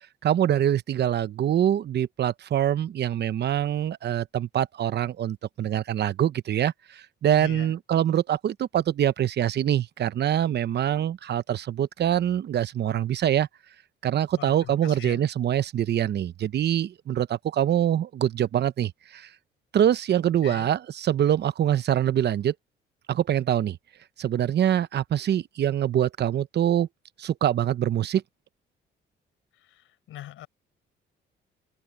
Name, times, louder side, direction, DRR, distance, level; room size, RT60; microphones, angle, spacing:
voice 1, 0.2-13.5 14.0-19.3 19.7-22.5 23.1-23.8 24.2-26.9 27.2-28.2, right 10 dB, 60° right, 0.9 m, -24 dB
voice 2, 7.4-7.7 14.4-15.2 20.4-20.7 29.6-30.5, left 13 dB, 85° left, 6.5 m, -42 dB
cardioid pair, 90°, 20 cm